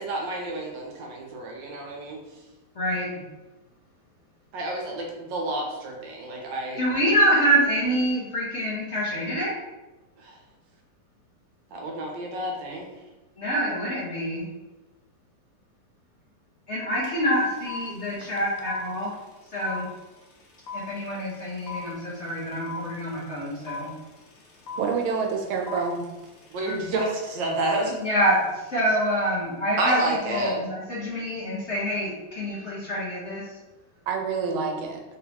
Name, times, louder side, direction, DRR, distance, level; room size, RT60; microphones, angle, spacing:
voice 1, 0.0-2.2 4.5-7.1 10.2-10.3 11.7-12.9 26.5-28.0 29.8-30.5, right 2 dB, 70° right, 0 dB, 1.4 m, -29 dB
voice 2, 2.7-3.2 6.8-9.5 13.4-14.5 16.7-19.1 19.5-19.9 20.7-23.9 28.0-33.6, equal, 45° left, -7 dB, 1.0 m, -26 dB
sound 1, 17.0-17.1 17.3-28.5, left 4 dB, 60° left, 1.3 m, -40 dB
voice 3, 24.7-26.1 34.1-35.0, right 5 dB, 90° right, 2 dB, 1.6 m, -27 dB
3.9 x 3.7 x 2.9 m, 1.1 s
omnidirectional pair, 2.2 m